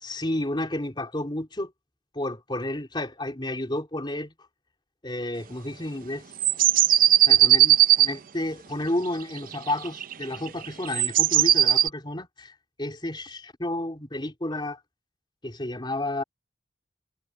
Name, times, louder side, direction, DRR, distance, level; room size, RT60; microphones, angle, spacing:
voice 1, 0.0-1.7 2.1-4.3 5.0-6.3 7.3-14.8 15.4-16.2, left 1 dB, 25° left, 3.7 m, -31 dB
sound 1, 6.4-8.1 9.5-11.9, right 12 dB, 50° right, 0.6 m, -18 dB
head